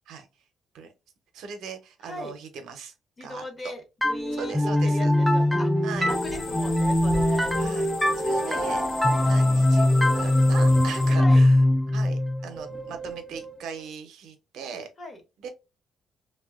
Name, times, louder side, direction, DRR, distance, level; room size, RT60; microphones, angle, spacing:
voice 1, 1.3-2.9 3.2-3.4 4.4-5.1 5.8-6.1 7.5-7.9 8.1-8.8 9.2-14.9 15.4-15.5, right 5 dB, 85° right, 0.6 m, -39 dB
voice 2, 2.0-2.3 3.2-7.5 8.3-9.0 11.2-11.4 15.0-15.2, left 1 dB, 35° left, 0.9 m, -39 dB
sound 1, 4.0-13.5, left 1 dB, ahead, 0.3 m, -22 dB
sound 2, 6.1-11.2, left 4 dB, 80° left, 0.5 m, -39 dB
2.7 x 2.1 x 2.3 m
cardioid pair, 90°, 0 cm